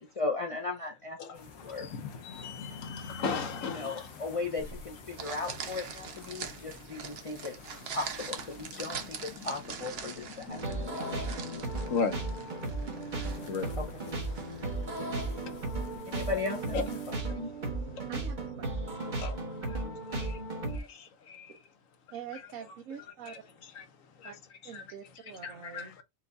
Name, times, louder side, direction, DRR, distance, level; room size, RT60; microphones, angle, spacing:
voice 1, 0.0-1.9 3.6-7.5 7.9-11.3 13.8-14.0 16.1-17.5 19.7-19.9, left 3 dB, 55° left, 0.3 m, -37 dB
sound 1, 1.3-17.2, left 6 dB, 90° left, 1.4 m, -50 dB
voice 2, 1.6-4.1 5.1-5.2 8.7-8.8 11.0-11.1 11.6-12.2 13.5-13.7 15.4-15.6 16.7-16.8 19.2-19.8 20.1-20.4 20.7-21.6 22.3-22.4 23.2-23.8 24.2-24.3 24.7-24.8 25.4-26.0, left 5 dB, 70° left, 1.2 m, -37 dB
sound 2, 4.6-16.0, right 6 dB, 55° right, 0.9 m, -44 dB
sound 3, 10.5-20.8, right 2 dB, 35° right, 1.2 m, -35 dB
voice 3, 18.1-18.5 22.1-23.3 24.2-24.4 24.6-25.9, right 8 dB, 75° right, 1.1 m, -44 dB
4.6 x 2.4 x 3.9 m
omnidirectional pair, 1.5 m